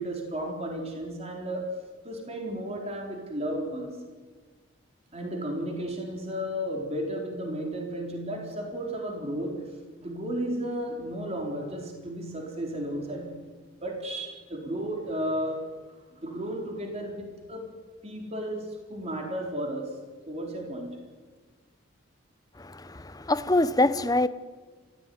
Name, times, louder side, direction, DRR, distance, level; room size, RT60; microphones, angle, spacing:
voice 1, 0.0-1.7 2.0-4.0 5.1-9.6 10.0-13.5 13.8-15.6 15.9-17.6 18.0-19.9 20.3-21.0, equal, 30° right, 4.1 m, -33 dB
voice 2, 22.6-24.3, left 2 dB, 20° left, 0.8 m, -25 dB
28.0 x 15.0 x 9.5 m
head